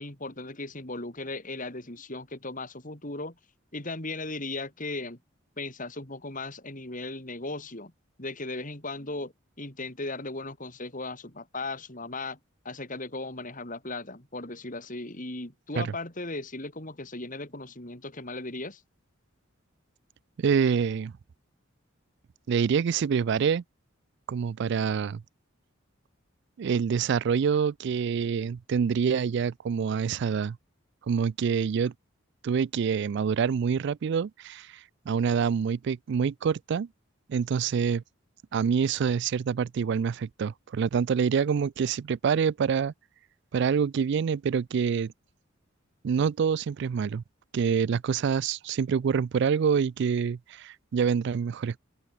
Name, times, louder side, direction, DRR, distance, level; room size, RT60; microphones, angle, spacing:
voice 1, 0.0-3.3 3.7-5.2 5.6-7.9 8.2-12.4 12.6-18.8, left 2 dB, 40° left, 4.9 m, -37 dB
voice 2, 20.4-21.1 22.5-23.6 24.3-25.2 26.6-30.6 31.1-31.9 32.4-34.7 35.1-36.9 37.3-38.0 38.5-42.9 43.5-45.1 46.0-47.2 47.5-51.8, right 6 dB, 55° right, 0.3 m, -26 dB
head